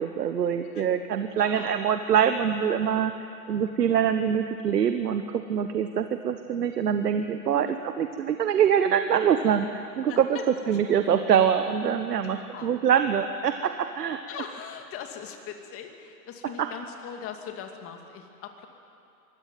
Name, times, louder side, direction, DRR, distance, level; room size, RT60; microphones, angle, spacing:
voice 1, 0.0-3.1 3.5-7.7 8.0-10.3 10.7-14.2 16.6-16.7, right 8 dB, 85° right, 8 dB, 1.3 m, -24 dB
voice 2, 1.3-1.7 7.5-7.8 10.1-10.8 12.2-12.7 14.3-18.7, left 8 dB, 30° left, 4 dB, 2.5 m, -40 dB
23.0 x 16.5 x 9.2 m, 2.6 s
hypercardioid pair, 125°, 47 cm